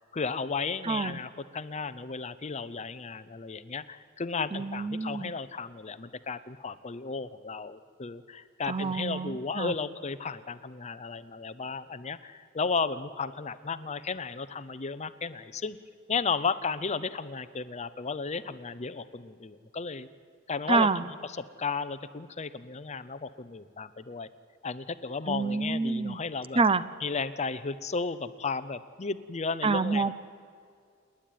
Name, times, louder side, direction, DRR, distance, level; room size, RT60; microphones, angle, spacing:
voice 1, 0.0-15.8 16.1-20.1 20.5-24.3 24.6-26.6 27.0-30.1, left 4 dB, 35° left, 14 dB, 0.7 m, -34 dB
voice 2, 0.8-1.2 4.5-5.3 8.7-9.7 20.7-21.1 25.3-26.2 26.6-26.8 29.6-30.1, right 4 dB, 25° right, 15 dB, 0.6 m, -27 dB
29.0 x 10.5 x 9.3 m, 2.3 s
head